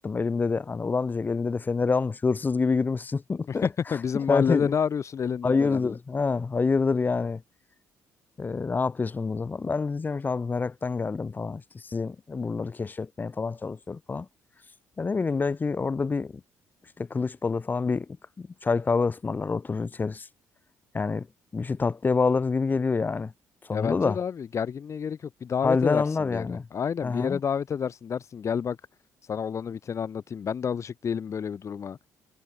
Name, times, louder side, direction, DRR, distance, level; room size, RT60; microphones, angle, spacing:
voice 1, 0.0-4.0 4.3-4.7 5.4-7.4 8.4-14.3 15.0-16.4 17.0-18.1 18.4-20.3 20.9-21.3 21.5-23.3 23.6-24.2 25.6-26.7 27.0-27.4, left 4 dB, 30° left, 0.6 m, -27 dB
voice 2, 3.5-5.9 23.7-28.8 29.3-32.0, left 7 dB, 50° left, 1.3 m, -29 dB
supercardioid pair, 65°, 7 cm